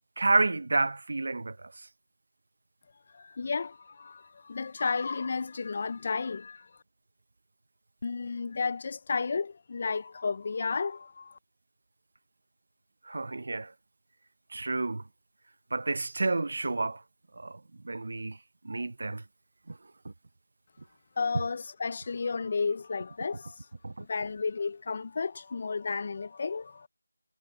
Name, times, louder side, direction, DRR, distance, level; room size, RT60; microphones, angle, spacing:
voice 1, 0.2-1.7 13.1-13.7 14.5-15.0 15.7-17.0 17.4-17.6 17.8-18.4 18.6-19.2 19.7-19.8 23.8-24.0, right 3 dB, 45° right, 0.8 m, -29 dB
voice 2, 3.1-6.7 8.0-11.4 21.2-23.6 24.1-26.9, left 4 dB, 25° left, 0.5 m, -32 dB
figure-of-eight pair, 175°, 0 cm